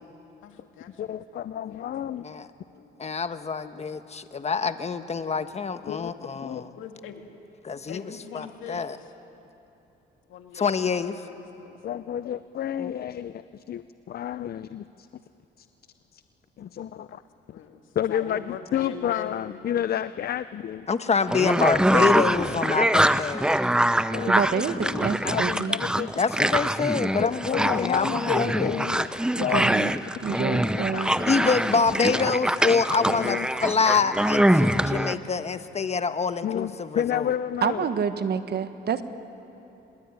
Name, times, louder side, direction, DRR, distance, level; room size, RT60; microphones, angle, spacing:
voice 1, 0.4-3.0 6.7-7.3 7.9-9.1 10.3-10.7 11.0-12.0 17.1-17.2 17.5-19.6 26.8-27.8 30.2-32.1, left 8 dB, 85° left, 5 dB, 2.2 m, -41 dB
voice 2, 1.0-2.3 5.9-6.1 6.4-6.6 11.8-15.2 15.6-15.7 16.1-16.2 16.6-17.2 18.0-20.9 23.1-23.2 24.1-26.5 27.1-29.1 29.4-30.0 32.0-32.3 32.6-33.5 36.4-37.9, left 10 dB, 50° left, 14 dB, 0.6 m, -31 dB
voice 3, 3.0-6.7 7.6-8.0 8.3-9.0 10.5-11.2 12.8-12.9 20.9-23.5 26.2-28.9 31.3-37.3, left 5 dB, 35° left, 10 dB, 1.2 m, -26 dB
sound 1, 21.3-35.1, right 1 dB, 5° right, 0.7 m, -24 dB
voice 4, 24.3-25.8 29.3-29.9 30.2-31.1 37.6-39.0, right 7 dB, 55° right, 10 dB, 1.3 m, -27 dB
25.5 x 20.5 x 9.6 m, 2.9 s
cardioid pair, 90°, 20 cm